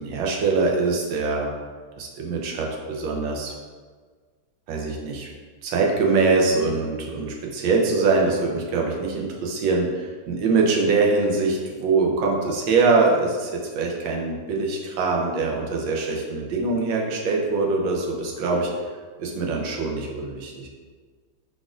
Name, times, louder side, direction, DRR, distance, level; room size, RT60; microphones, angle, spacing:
voice 1, 0.0-1.5 2.0-3.5 4.7-5.3 5.6-18.7 19.2-20.7, right 3 dB, 90° right, -1 dB, 1.5 m, -23 dB
4.8 x 4.0 x 2.5 m, 1.5 s
omnidirectional pair, 2.1 m